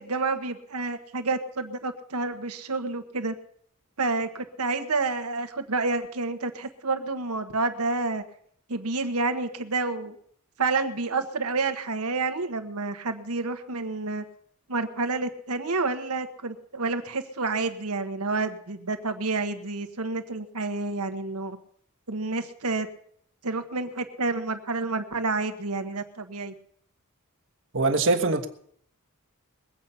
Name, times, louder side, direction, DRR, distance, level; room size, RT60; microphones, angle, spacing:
voice 1, 0.0-3.3 4.0-8.2 8.7-10.2 10.6-14.2 14.7-21.6 22.1-22.9 23.4-26.5, right 3 dB, 80° right, 8 dB, 1.4 m, -29 dB
voice 2, 27.7-28.5, right 3 dB, 60° right, 5 dB, 1.4 m, -22 dB
21.5 x 8.4 x 5.6 m, 0.64 s
head